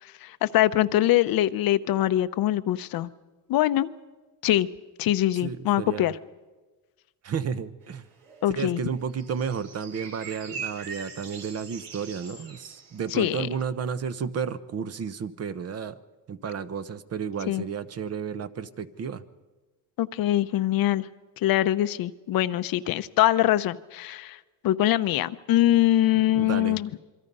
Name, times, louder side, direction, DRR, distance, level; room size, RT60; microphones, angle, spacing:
voice 1, 0.0-3.1 3.5-3.9 4.4-4.7 5.0-6.2 8.4-8.8 13.1-13.5 17.5-17.6 20.0-21.1 21.4-26.9, left 14 dB, 60° left, 13 dB, 0.8 m, -23 dB
voice 2, 5.4-6.1 7.2-8.0 8.6-16.0 16.3-19.2 26.3-26.8, right 6 dB, 40° right, 13 dB, 1.0 m, -32 dB
sound 1, 7.8-13.3, right 6 dB, 80° right, 4.5 m, -42 dB
26.5 x 23.5 x 5.5 m, 1.2 s
cardioid pair, 135°, 40 cm